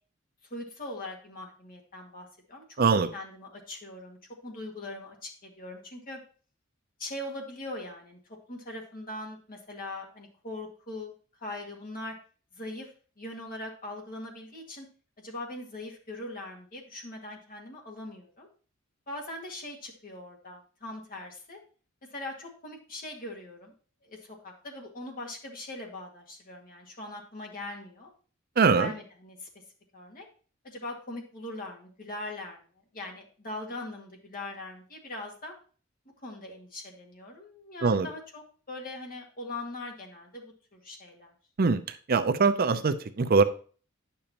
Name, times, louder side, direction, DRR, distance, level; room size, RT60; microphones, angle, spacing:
voice 1, 0.5-2.8 3.1-4.2 4.4-6.2 7.0-8.2 8.5-11.1 11.4-12.1 12.5-12.9 13.2-14.9 15.2-18.5 19.1-21.6 22.1-23.7 24.0-28.1 28.7-29.5 29.9-30.3 30.6-32.6 32.9-35.5 36.2-41.3, left 2 dB, 45° left, 0 dB, 2.0 m, -41 dB
voice 2, 2.8-3.1 28.6-28.9 37.8-38.1 41.6-43.4, right 4 dB, 45° right, 10 dB, 0.5 m, -23 dB
10.0 x 6.9 x 2.9 m, 0.40 s
head